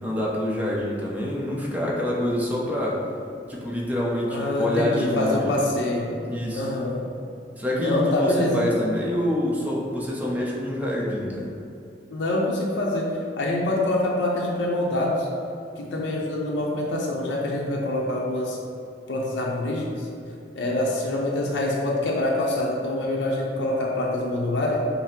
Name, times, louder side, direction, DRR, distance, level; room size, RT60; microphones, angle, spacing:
voice 1, 0.0-3.0 3.5-5.5 6.1-6.7 7.6-11.5, left 1 dB, 10° right, -4 dB, 0.7 m, -26 dB
voice 2, 4.3-6.1 6.5-7.0 7.8-8.7 12.1-15.3 15.8-18.6 19.1-20.1 20.5-24.8, left 1 dB, 90° left, -2 dB, 0.6 m, -25 dB
5.6 x 2.0 x 4.3 m, 2.5 s
head